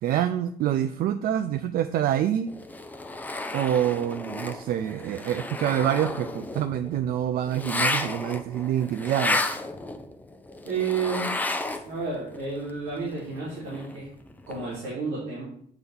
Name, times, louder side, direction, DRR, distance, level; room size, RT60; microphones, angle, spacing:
voice 1, 0.0-2.5 3.5-9.6, right 10 dB, 60° right, 11 dB, 0.4 m, -26 dB
sound 1, 2.5-12.1 12.3-14.8, left 2 dB, 10° left, 0.6 m, -33 dB
voice 2, 10.6-11.3 11.8-14.1 14.5-15.4, right 5 dB, 90° right, -7 dB, 2.7 m, -31 dB
7.9 x 3.4 x 5.6 m, 0.64 s
cardioid pair, 110°, 17 cm